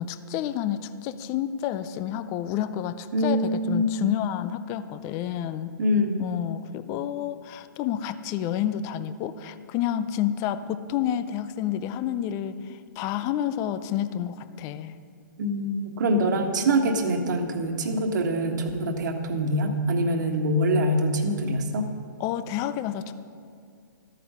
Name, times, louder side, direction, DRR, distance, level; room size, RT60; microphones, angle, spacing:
voice 1, 0.0-5.7 6.2-15.0 22.2-23.1, left 10 dB, 30° left, 14 dB, 0.5 m, -29 dB
voice 2, 3.1-3.9 5.8-6.2 15.4-21.8, equal, 60° right, 4 dB, 1.5 m, -24 dB
13.5 x 9.2 x 5.6 m, 2.3 s
hypercardioid pair, 130°, 11 cm